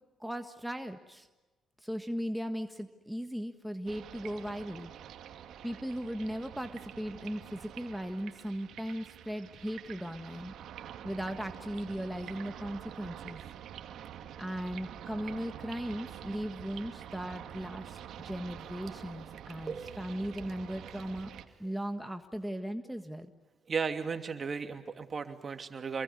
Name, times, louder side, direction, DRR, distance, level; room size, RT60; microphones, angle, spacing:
voice 1, 0.2-1.3 1.8-4.9 5.6-10.5 11.0-13.4 14.4-18.0 18.2-21.3 21.6-23.3, equal, ahead, 6 dB, 1.6 m, -37 dB
sound 1, 3.9-21.5, right 10 dB, 75° right, 2.1 m, -47 dB
voice 2, 19.6-20.1 23.7-26.0, right 5 dB, 40° right, 7 dB, 2.8 m, -35 dB
27.5 x 22.0 x 9.8 m, 1.1 s
cardioid pair, 90°, 0 cm